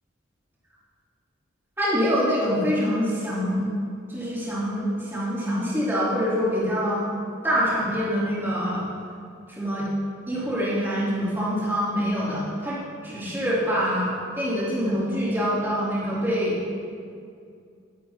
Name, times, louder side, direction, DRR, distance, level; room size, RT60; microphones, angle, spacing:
voice 1, 1.8-3.6 4.1-7.1 7.4-8.9 9.5-9.9 10.3-16.6, equal, 10° right, -10 dB, 3.0 m, -25 dB
12.0 x 12.0 x 2.9 m, 2.3 s
head